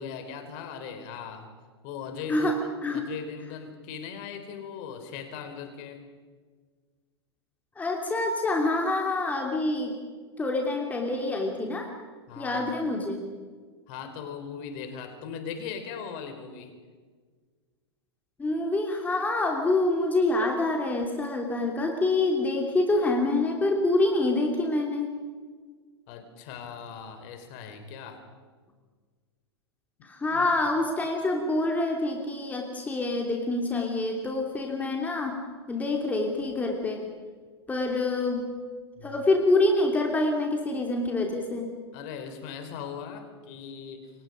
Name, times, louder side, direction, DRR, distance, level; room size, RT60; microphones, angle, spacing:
voice 1, 0.0-1.5 1.8-2.5 2.9-6.0 12.3-12.7 13.9-16.7 26.1-28.2 30.3-30.5 39.0-39.2 41.9-44.1, left 7 dB, 40° left, 7 dB, 4.1 m, -39 dB
voice 2, 2.3-3.1 7.8-9.9 10.4-11.9 12.4-13.3 18.4-25.1 30.0-35.4 35.7-37.1 37.7-38.4 39.0-41.7, left 2 dB, 10° left, 2 dB, 3.0 m, -26 dB
29.5 x 24.0 x 5.2 m, 1.5 s
figure-of-eight pair, 100°, 14 cm